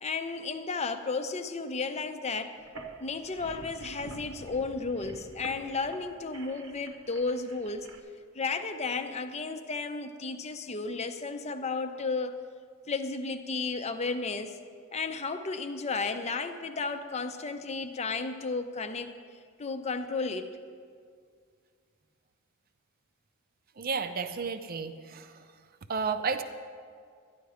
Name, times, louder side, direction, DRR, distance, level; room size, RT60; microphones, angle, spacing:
voice 1, 0.0-2.6 3.0-7.9 8.3-12.4 12.9-14.6 14.9-20.6, left 4 dB, 30° left, 8 dB, 0.6 m, -33 dB
sound 1, 2.6-8.0, right 2 dB, 60° right, 1.0 m, -47 dB
voice 2, 23.8-25.4 25.9-26.4, right 5 dB, 45° right, 9 dB, 0.6 m, -32 dB
12.5 x 10.5 x 4.9 m, 2.1 s
head